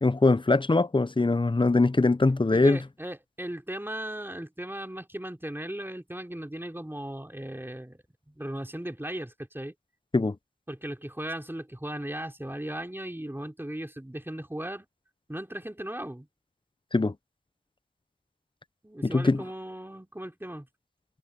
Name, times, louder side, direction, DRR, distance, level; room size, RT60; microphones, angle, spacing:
voice 1, 0.0-2.8 10.1-10.3 16.9-17.1 19.0-19.4, left 3 dB, 25° left, 0.8 m, -22 dB
voice 2, 2.5-8.0 8.3-9.7 10.7-14.9 15.3-16.3 18.8-20.7, right 1 dB, 10° right, 3.5 m, -37 dB
cardioid pair, 50°, 19 cm